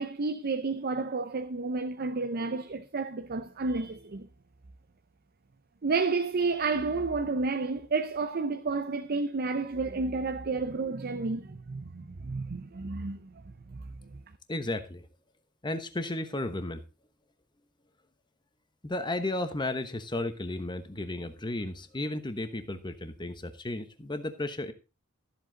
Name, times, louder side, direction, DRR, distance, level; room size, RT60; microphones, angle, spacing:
voice 1, 0.0-4.3 5.8-14.1, right 3 dB, 45° right, 0.6 m, -31 dB
voice 2, 14.5-15.1 15.6-16.8 18.8-24.7, left 2 dB, 20° left, 1.1 m, -34 dB
13.5 x 7.8 x 4.0 m
head